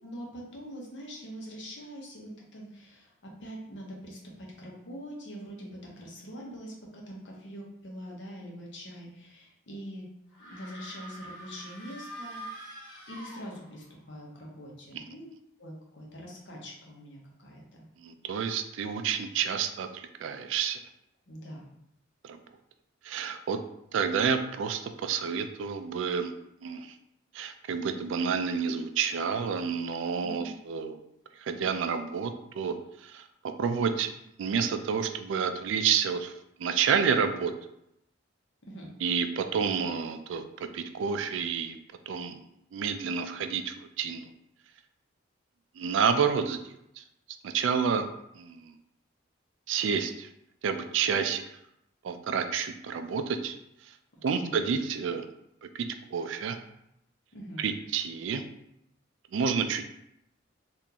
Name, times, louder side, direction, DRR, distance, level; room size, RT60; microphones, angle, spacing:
voice 1, 0.0-10.1 10.4-12.7 13.1-15.3 15.6-17.8 21.3-21.7 30.2-30.5 38.6-38.9 54.1-54.7 57.3-57.7, equal, 60° left, -2 dB, 0.8 m, -44 dB
sound 1, 10.3-14.0, right 1 dB, 75° left, 1.1 m, -45 dB
voice 2, 18.0-20.8 22.2-22.4 23.0-23.6 23.9-26.3 26.6-26.9 27.3-31.0 31.4-33.3 33.6-34.1 34.4-36.3 36.6-37.5 39.0-40.4 40.7-41.8 42.1-42.4 42.7-44.3 45.8-47.0 47.4-48.1 48.3-48.7 49.7-50.3 50.6-51.4 52.0-53.6 53.8-54.0 54.2-55.3 55.6-56.6 57.6-58.4 59.3-59.8, right 6 dB, 70° right, 8 dB, 0.3 m, -29 dB
3.7 x 2.5 x 2.8 m, 0.79 s
head